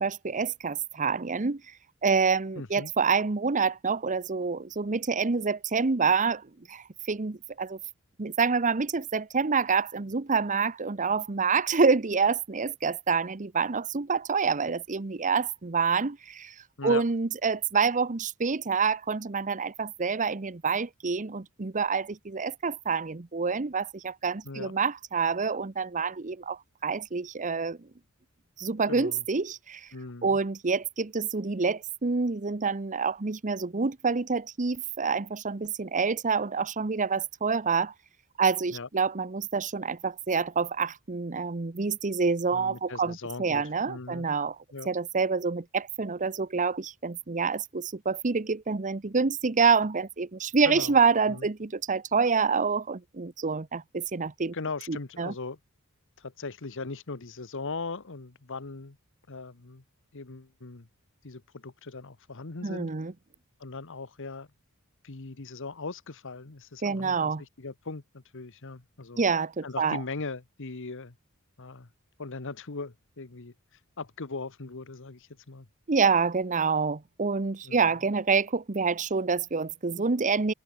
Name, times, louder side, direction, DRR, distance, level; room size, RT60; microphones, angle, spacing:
voice 1, 0.0-1.6 2.0-7.8 8.2-16.5 16.8-27.8 28.6-29.9 30.2-37.9 38.4-44.6 44.8-54.5 54.9-55.3 62.6-63.1 66.8-67.4 69.2-70.0 75.9-80.5, right 5 dB, 35° right, 0.8 m, -27 dB
voice 2, 2.5-2.9 16.8-17.0 24.4-24.7 28.9-29.2 29.9-30.4 38.7-38.9 42.5-44.3 44.7-44.9 50.6-51.0 51.3-51.5 54.5-55.6 56.2-59.0 59.3-59.8 60.1-60.9 61.2-62.9 63.6-64.5 65.0-69.2 69.6-71.2 71.6-71.9 72.2-73.5 74.0-75.7 77.6-77.8, left 3 dB, 60° left, 1.2 m, -39 dB
head